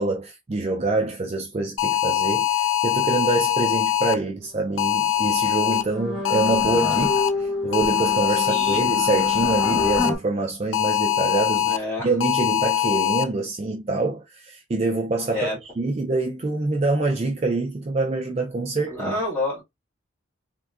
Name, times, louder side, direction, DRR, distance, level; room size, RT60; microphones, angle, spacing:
voice 1, 0.0-19.1, right 3 dB, 30° right, 0.3 m, -26 dB
sound 1, 1.8-4.2 4.8-5.8 6.2-7.3 7.7-10.1 10.7-11.8 12.2-13.2, left 11 dB, 75° left, 0.4 m, -22 dB
sound 2, 4.7-4.9 5.2-10.2, left 2 dB, 5° right, 0.9 m, -29 dB
voice 2, 8.5-8.8 11.6-12.1 15.3-15.6 18.9-19.6, left 2 dB, 10° left, 1.8 m, -28 dB
3.5 x 2.2 x 2.4 m
head